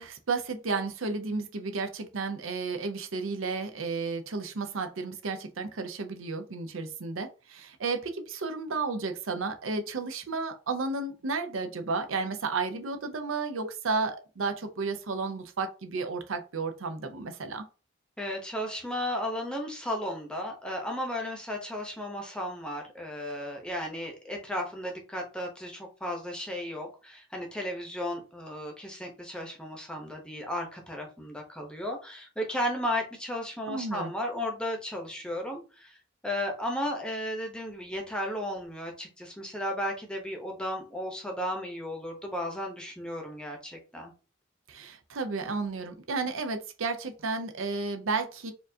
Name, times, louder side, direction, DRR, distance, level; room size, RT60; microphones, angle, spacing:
voice 1, 0.0-17.7 33.7-34.1 44.7-48.5, right 4 dB, 85° right, 7 dB, 0.6 m, -32 dB
voice 2, 18.2-36.0 36.2-44.1, left 1 dB, 5° left, 1 dB, 0.8 m, -34 dB
4.4 x 2.5 x 2.7 m, 0.34 s
head